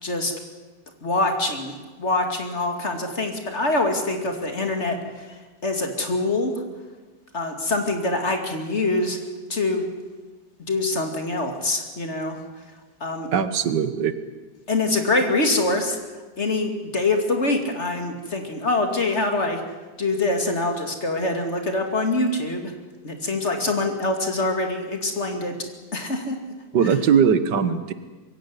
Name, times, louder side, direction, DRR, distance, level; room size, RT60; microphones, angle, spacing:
voice 1, 0.0-0.3 1.0-6.5 7.3-9.2 9.5-9.9 10.7-12.4 13.0-13.3 14.7-16.0 16.4-19.6 20.0-22.7 23.0-25.5 25.9-26.4, left 2 dB, 40° left, 4 dB, 2.8 m, -24 dB
voice 2, 13.3-14.1 26.7-27.9, right 7 dB, 85° right, 12 dB, 1.9 m, -20 dB
22.0 x 16.5 x 9.8 m, 1.3 s
omnidirectional pair, 1.8 m